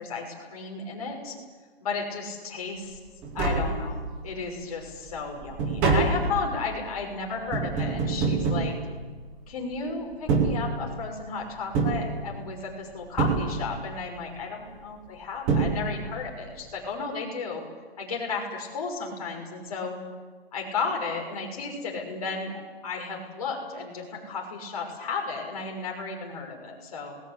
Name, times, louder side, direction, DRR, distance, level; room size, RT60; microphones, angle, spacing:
voice 1, 0.0-1.3 1.8-3.0 3.3-8.7 9.5-17.6 18.0-20.0 20.5-22.5 22.8-27.2, left 4 dB, 35° left, 1 dB, 6.1 m, -33 dB
Tap, 2.9-3.0 3.2-4.3 4.8-9.5 10.1-11.2 11.7-12.7 13.2-14.0 15.0-15.1 15.5-16.3 16.6-16.7, right 4 dB, 5° right, 0.7 m, -27 dB
26.0 x 20.5 x 8.4 m, 1.4 s
hypercardioid pair, 180°, 31 cm